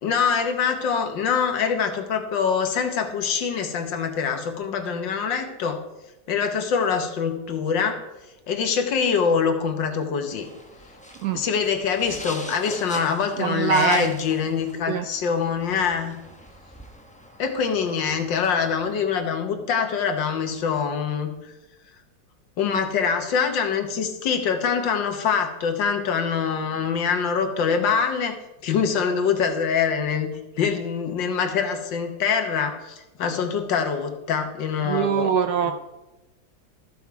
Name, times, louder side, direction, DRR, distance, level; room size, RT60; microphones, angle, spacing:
voice 1, 0.0-5.8 6.3-8.1 8.5-10.5 11.3-16.2 17.4-21.5 22.6-30.3 30.6-35.3 35.6-35.7, left 6 dB, 75° left, 6 dB, 1.8 m, -24 dB
sound 1, 10.3-19.0, left 1 dB, 10° left, 0.4 m, -42 dB
voice 2, 13.4-14.2 14.9-15.1 34.8-35.7, right 7 dB, 70° right, 8 dB, 0.9 m, -23 dB
13.5 x 7.2 x 4.7 m, 1.0 s
omnidirectional pair, 2.1 m